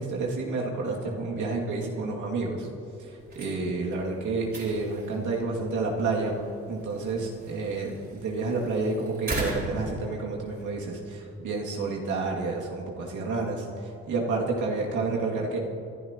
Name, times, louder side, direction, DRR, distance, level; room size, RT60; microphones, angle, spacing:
voice 1, 0.0-2.7 3.0-6.3 6.7-15.6, right 3 dB, 75° right, -2 dB, 2.5 m, -30 dB
sound 1, 3.2-10.7, right 2 dB, 35° right, 4.1 m, -39 dB
26.0 x 11.5 x 3.0 m, 2.6 s
cardioid pair, 90°, 30 cm